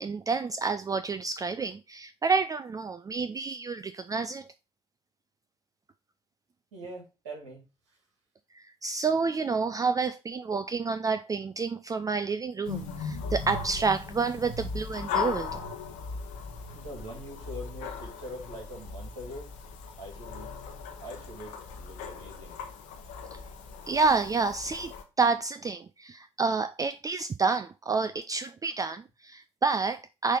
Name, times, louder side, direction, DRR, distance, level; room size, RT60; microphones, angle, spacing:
voice 1, 0.0-4.5 8.5-15.6 23.3-23.4 23.9-30.4, right 4 dB, 25° right, 0.4 m, -29 dB
voice 2, 6.7-7.7 16.7-19.5 20.0-20.6 21.0-22.6, equal, 80° right, 2.1 m, -43 dB
sound 1, 12.6-25.0, left 5 dB, 70° left, 1.1 m, -38 dB
6.3 x 3.3 x 5.3 m
figure-of-eight pair, 50°, 15 cm